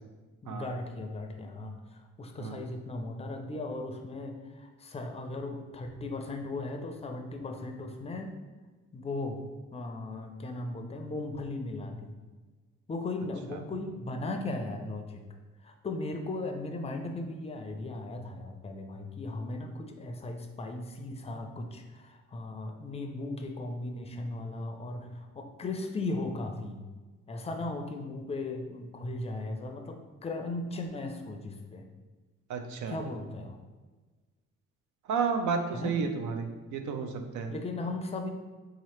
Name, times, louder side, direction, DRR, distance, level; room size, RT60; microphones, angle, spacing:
voice 1, 0.4-8.3 8.9-9.4 9.7-12.2 12.9-15.2 15.6-26.8 27.3-31.8 32.9-33.6 35.7-35.9 37.5-38.3, left 2 dB, 20° left, 5 dB, 0.4 m, -37 dB
voice 2, 32.5-33.0 35.1-37.5, right 5 dB, 75° right, 5 dB, 0.5 m, -32 dB
3.7 x 2.8 x 3.1 m, 1.3 s
cardioid pair, 90°, 30 cm